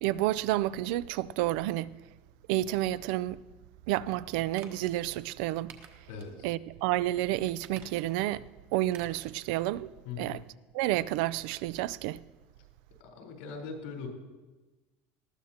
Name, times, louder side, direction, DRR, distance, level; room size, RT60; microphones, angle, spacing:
voice 1, 0.0-1.9 2.5-3.4 3.9-5.7 6.4-8.4 8.7-9.9 10.2-10.4 10.7-12.2, right 15 dB, 70° right, 0.4 m, -30 dB
sound 1, 4.5-4.9 5.7-6.3 6.7-6.8 7.5-8.3 8.9-9.3 9.6-9.7, right 7 dB, 45° right, 1.3 m, -51 dB
voice 2, 6.1-6.5 10.0-10.4 13.0-14.1, left 5 dB, 90° left, 3.9 m, -40 dB
19.5 x 14.0 x 2.9 m
cardioid pair, 165°, 5 cm